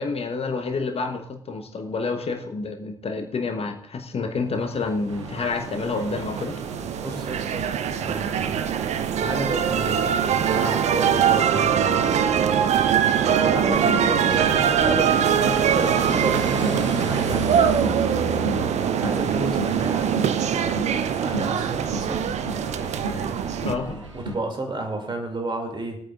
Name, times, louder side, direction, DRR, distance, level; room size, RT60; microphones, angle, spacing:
voice 1, 0.0-6.6 23.6-24.0, left 4 dB, 40° left, 5 dB, 1.1 m, -28 dB
sound 1, 4.8-23.7, right 8 dB, 50° right, 0.6 m, -23 dB
sound 2, 5.1-24.4, right 1 dB, 90° right, 0.7 m, -35 dB
voice 2, 7.0-8.6 9.2-12.0 13.2-17.8 19.0-20.1 21.0-22.2 24.1-26.0, right 2 dB, 30° right, 3 dB, 2.5 m, -31 dB
22.0 x 8.8 x 2.5 m, 0.73 s
figure-of-eight pair, 40°, 15 cm